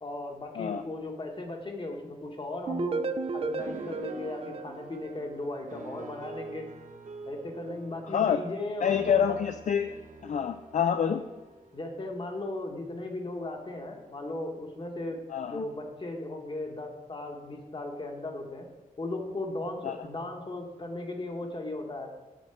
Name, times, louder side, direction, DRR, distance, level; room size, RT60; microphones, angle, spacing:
voice 1, 0.0-3.1 3.3-6.7 7.3-9.4 11.7-15.2 15.5-18.7 19.0-22.1, left 2 dB, 35° left, 3 dB, 1.3 m, -37 dB
sound 1, 2.7-5.6, right 4 dB, 40° right, 0.4 m, -34 dB
sound 2, 3.3-12.0, right 3 dB, 60° right, 0.9 m, -47 dB
voice 2, 8.1-8.4 8.8-9.9 10.2-11.2 15.3-15.6 19.8-20.0, left 8 dB, 60° left, 9 dB, 0.4 m, -27 dB
9.0 x 4.3 x 6.9 m, 1.2 s
wide cardioid pair, 125°, 15 cm